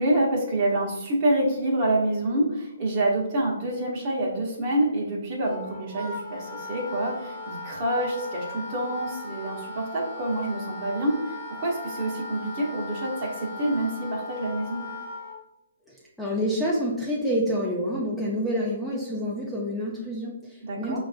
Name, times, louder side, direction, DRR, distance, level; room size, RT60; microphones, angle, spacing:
voice 1, 0.0-14.8 20.6-21.0, right 1 dB, 40° right, -3 dB, 1.0 m, -27 dB
Wind instrument woodwind instrument, 5.4-15.4, left 2 dB, 40° left, 0.9 m, -38 dB
voice 2, 15.8-21.0, equal, ahead, -5 dB, 0.5 m, -28 dB
5.0 x 2.5 x 2.4 m, 0.91 s
hypercardioid pair, 145°, 0 cm